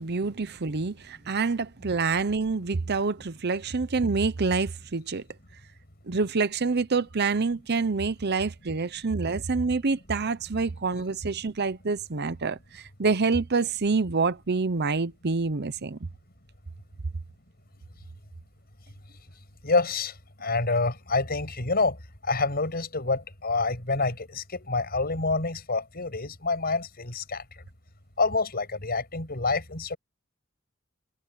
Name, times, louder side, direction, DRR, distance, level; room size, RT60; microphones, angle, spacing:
voice 1, 0.0-5.2 6.1-16.0, right 4 dB, 50° right, 0.8 m, -27 dB
voice 2, 19.6-20.1 20.4-22.0 22.2-27.4 28.2-30.0, left 3 dB, 50° left, 6.6 m, -27 dB
head